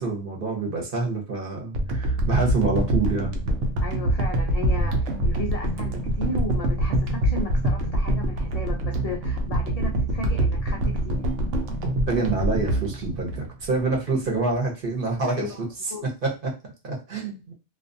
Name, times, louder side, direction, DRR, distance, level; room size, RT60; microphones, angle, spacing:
voice 1, 0.0-3.3 12.1-15.5 16.0-17.5, right 3 dB, 50° right, 0 dB, 0.9 m, -27 dB
sound 1, 1.7-14.0 14.5-14.6, right 1 dB, 90° right, 0.9 m, -25 dB
voice 2, 3.8-11.3 15.3-15.7 15.9-16.1, left 2 dB, 70° left, 0 dB, 0.3 m, -35 dB
2.3 x 2.3 x 2.5 m, 0.29 s
omnidirectional pair, 1.2 m